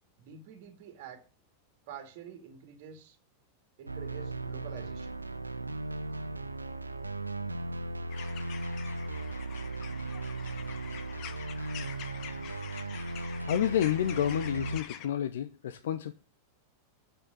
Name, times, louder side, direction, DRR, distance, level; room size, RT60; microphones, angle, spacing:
voice 1, 0.2-1.2 1.9-3.2 3.8-5.2, right 8 dB, 50° right, 2.2 m, -47 dB
sound 1, 3.9-14.8, right 2 dB, 80° right, 0.7 m, -37 dB
sound 2, 8.1-15.1, left 10 dB, 40° left, 1.1 m, -46 dB
voice 2, 13.4-16.1, left 10 dB, 60° left, 0.7 m, -29 dB
8.9 x 6.5 x 7.4 m
figure-of-eight pair, 90°, 0 cm